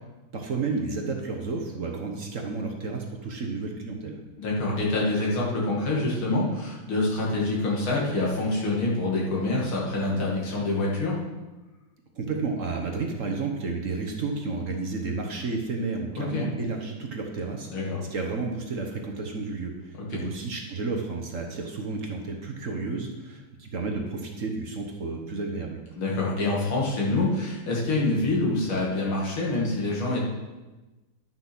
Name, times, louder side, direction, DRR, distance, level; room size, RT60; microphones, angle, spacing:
voice 1, 0.3-4.2 12.2-17.7 18.1-25.8, right 3 dB, 45° right, 2 dB, 1.3 m, -31 dB
voice 2, 4.4-11.2 16.2-16.5 17.7-18.0 20.1-20.2 26.0-30.3, left 2 dB, 75° left, -4 dB, 3.1 m, -26 dB
11.0 x 6.1 x 6.1 m, 1.2 s
omnidirectional pair, 2.3 m